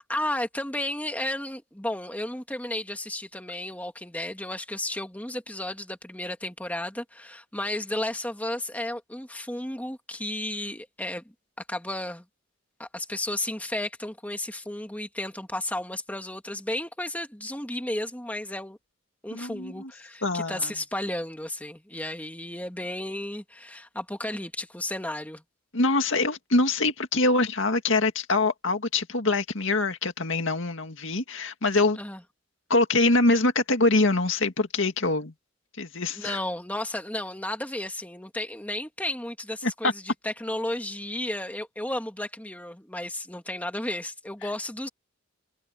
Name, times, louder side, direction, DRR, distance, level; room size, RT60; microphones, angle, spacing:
voice 1, 0.1-11.2 11.7-12.2 12.8-18.8 19.2-25.4 32.0-32.2 36.1-44.9, left 1 dB, 5° left, 1.9 m, -33 dB
voice 2, 19.3-19.9 20.2-20.7 25.7-32.0 32.7-35.3 35.8-36.4 39.6-39.9, left 2 dB, 65° left, 2.2 m, -24 dB
head